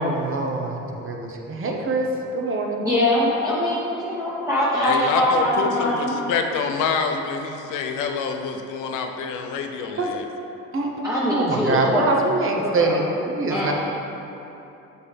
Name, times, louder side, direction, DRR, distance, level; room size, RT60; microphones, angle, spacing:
voice 1, 0.0-2.8 10.0-10.1 10.7-10.9 11.2-13.7, right 2 dB, 45° right, 1 dB, 0.8 m, -24 dB
voice 2, 2.8-6.1 11.0-12.1 12.6-13.0 13.5-13.7, left 1 dB, 10° right, -11 dB, 1.2 m, -22 dB
voice 3, 4.8-10.3, left 5 dB, 90° left, 5 dB, 0.6 m, -26 dB
6.8 x 4.4 x 3.4 m, 2.9 s
cardioid pair, 90°, 30 cm